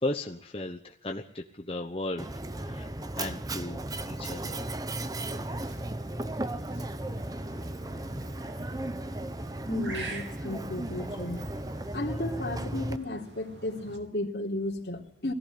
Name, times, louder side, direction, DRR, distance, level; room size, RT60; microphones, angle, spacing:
voice 1, 0.0-2.3 2.6-2.9 3.1-4.7, left 2 dB, 30° left, 3 dB, 1.1 m, -35 dB
Mechanisms, 2.2-13.0, right 1 dB, 20° right, 0.8 m, -35 dB
sound 1, 4.8-14.0, right 2 dB, 85° right, 3.4 m, -47 dB
voice 2, 9.7-11.5 11.9-15.3, left 1 dB, 65° left, 0 dB, 3.3 m, -34 dB
21.0 x 15.0 x 8.7 m, 0.63 s
head